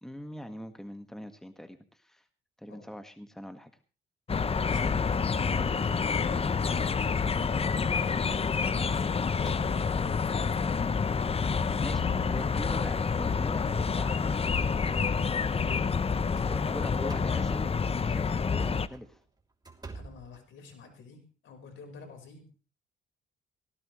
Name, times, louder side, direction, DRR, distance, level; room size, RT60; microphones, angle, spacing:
voice 1, 0.0-2.2 2.6-3.7 11.8-15.1 16.4-17.7 18.0-19.2, equal, ahead, 8 dB, 1.7 m, -42 dB
sound 1, 4.3-18.9, left 5 dB, 30° left, 0.8 m, -28 dB
voice 2, 4.6-7.4 7.8-10.8 11.7-12.4 19.9-22.4, left 3 dB, 75° left, 4 dB, 4.8 m, -48 dB
sound 2, 8.6-10.2 10.9-11.0 11.4-11.5 12.4-12.7 13.1-14.6 16.1-17.6 18.7-21.0, right 3 dB, 20° right, 3.1 m, -47 dB
18.5 x 17.0 x 3.2 m, 0.34 s
cardioid pair, 90°, 20 cm